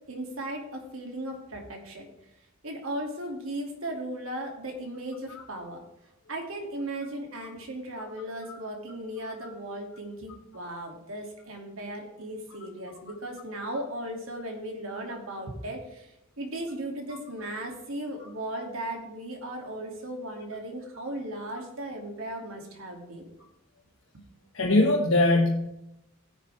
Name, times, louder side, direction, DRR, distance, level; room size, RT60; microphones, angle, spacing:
voice 1, 0.1-2.1 2.6-5.8 6.3-23.3, right 1 dB, 70° right, 1 dB, 2.6 m, -37 dB
voice 2, 24.5-25.7, left 2 dB, 65° left, -2 dB, 1.5 m, -21 dB
15.5 x 9.8 x 3.5 m, 0.83 s
head